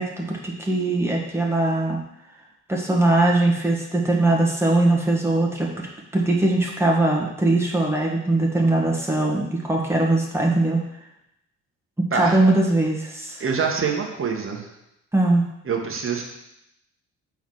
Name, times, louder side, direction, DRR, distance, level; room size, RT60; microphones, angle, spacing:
voice 1, 0.0-2.0 2.7-5.9 6.1-10.8 12.0-13.4 15.1-15.5, right 2 dB, 5° right, -2 dB, 1.6 m, -21 dB
voice 2, 13.4-14.7 15.6-16.2, right 5 dB, 25° right, 1 dB, 1.4 m, -25 dB
7.1 x 4.0 x 4.8 m, 0.83 s
figure-of-eight pair, 45°, 46 cm